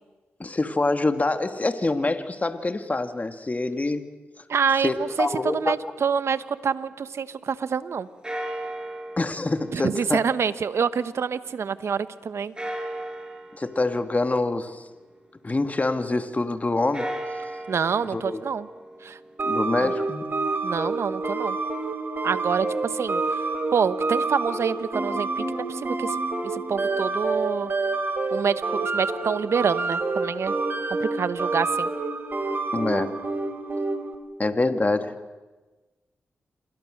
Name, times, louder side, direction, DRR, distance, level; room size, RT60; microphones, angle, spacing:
voice 1, 0.4-4.1 4.8-5.8 9.2-10.2 13.5-14.8 15.4-17.1 18.0-18.4 19.4-20.2 32.7-33.1 34.4-35.1, left 2 dB, 30° left, 8 dB, 2.2 m, -25 dB
voice 2, 4.5-8.1 9.7-12.5 17.7-18.7 19.0-19.2 19.8-19.9 20.6-21.6 22.2-26.2 26.4-27.7 28.3-30.5 31.0-31.9, right 6 dB, 65° right, 14 dB, 1.1 m, -27 dB
sound 1, 5.0-7.1 8.2-11.6 12.6-15.5 16.8-20.8, right 1 dB, 20° right, 6.2 m, -38 dB
sound 2, 19.4-34.1, right 3 dB, 45° right, 3.7 m, -28 dB
27.5 x 23.5 x 6.6 m, 1.2 s
supercardioid pair, 40°, 5 cm